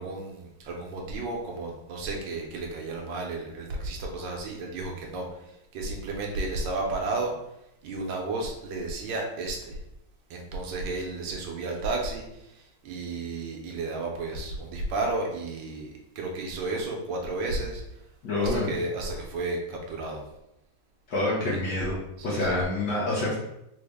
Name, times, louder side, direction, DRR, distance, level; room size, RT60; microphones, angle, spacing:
voice 1, 0.0-5.3 5.7-7.4 7.8-9.8 10.3-12.3 12.6-17.8 18.4-20.2 21.4-21.6 22.2-22.6, right 2 dB, 75° right, 0 dB, 1.3 m, -32 dB
voice 2, 18.2-18.7 21.1-22.0 22.2-23.4, left 2 dB, 60° left, -6 dB, 1.2 m, -27 dB
3.9 x 2.0 x 3.4 m, 0.85 s
omnidirectional pair, 2.1 m